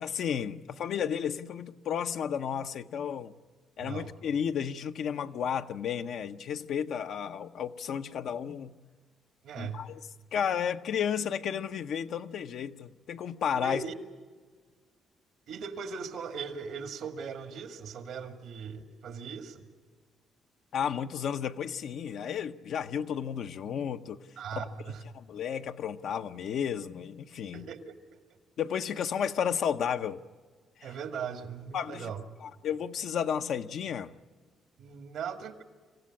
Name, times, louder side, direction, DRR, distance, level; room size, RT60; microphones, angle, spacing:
voice 1, 0.0-3.3 3.8-8.7 9.6-10.0 10.3-13.8 20.7-24.2 24.6-24.7 25.1-27.6 28.6-30.2 30.8-30.9 31.7-32.1 32.4-34.1, left 8 dB, 70° left, 8 dB, 0.8 m, -32 dB
voice 2, 3.8-4.1 9.4-9.8 13.6-13.9 15.5-19.7 24.4-25.0 27.5-28.2 30.8-32.2 34.8-35.6, right 6 dB, 80° right, 7 dB, 1.9 m, -39 dB
26.0 x 15.5 x 8.6 m, 1.5 s
cardioid pair, 90°, 0 cm